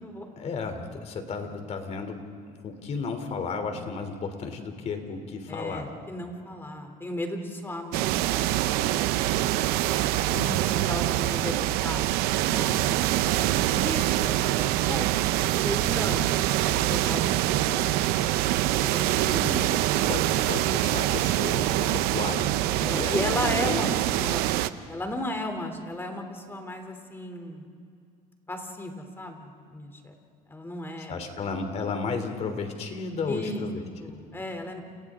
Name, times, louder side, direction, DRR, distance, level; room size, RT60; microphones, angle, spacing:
voice 1, 0.4-5.9 19.4-19.7 20.1-23.8 31.1-33.8 34.1-34.2, left 4 dB, 45° left, 6 dB, 3.1 m, -33 dB
voice 2, 5.5-8.5 9.3-9.7 10.3-15.1 15.3-17.9 18.8-20.1 22.7-23.9 24.2-24.4 24.9-27.7 28.5-30.1 30.5-31.1 33.3-33.7 34.0-34.8, left 1 dB, 15° left, 5 dB, 3.1 m, -35 dB
sound 1, 7.9-24.7, right 14 dB, 90° right, 0.7 m, -25 dB
30.0 x 29.5 x 3.7 m, 2.3 s
cardioid pair, 125°, 16 cm